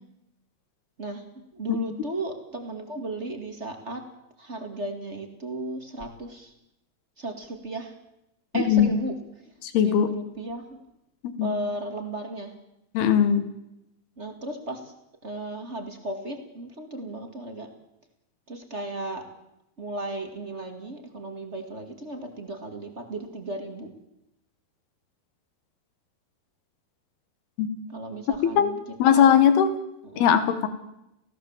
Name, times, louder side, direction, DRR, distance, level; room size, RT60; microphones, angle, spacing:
voice 1, 1.5-4.0 4.4-6.5 7.2-7.9 8.5-9.1 9.8-10.6 11.4-12.5 14.2-14.8 15.2-17.7 18.5-19.2 19.8-23.9 27.9-28.8 29.1-29.2 30.1-30.2, right 2 dB, 25° right, 5 dB, 1.7 m, -35 dB
voice 2, 8.5-8.9 9.6-10.1 11.2-11.5 13.0-13.5 27.6-27.7 28.4-28.7 29.0-29.7 30.2-30.7, left 8 dB, 80° left, 11 dB, 3.6 m, -20 dB
29.5 x 17.0 x 7.4 m, 0.87 s
omnidirectional pair, 4.5 m